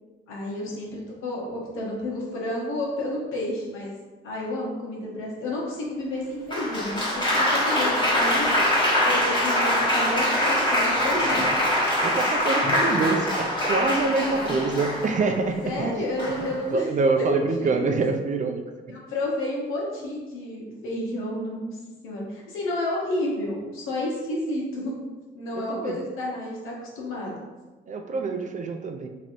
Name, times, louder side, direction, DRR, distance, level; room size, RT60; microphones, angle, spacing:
voice 1, 0.3-3.9 4.2-8.5 9.0-11.5 14.3-14.7 15.6-16.9 17.2-17.8 18.9-21.8 22.0-24.9 25.3-27.4, left 1 dB, 90° left, -3 dB, 1.2 m, -31 dB
Applause, 6.5-15.4 16.2-16.6, left 1 dB, 25° left, 1.3 m, -23 dB
voice 2, 12.0-16.1 16.4-18.6 25.6-26.0 27.9-29.1, right 3 dB, 40° right, 5 dB, 0.5 m, -26 dB
3.1 x 2.7 x 4.4 m, 1.2 s
cardioid pair, 90°, 20 cm